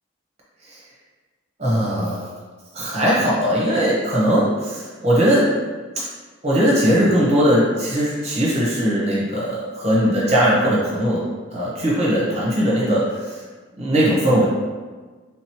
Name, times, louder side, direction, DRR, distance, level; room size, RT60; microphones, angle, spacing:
voice 1, 1.6-2.3 2.7-5.5 6.0-6.1 6.4-11.2 11.5-13.4 13.8-14.5, equal, 30° right, -6 dB, 0.8 m, -19 dB
3.4 x 2.9 x 2.9 m, 1.4 s
head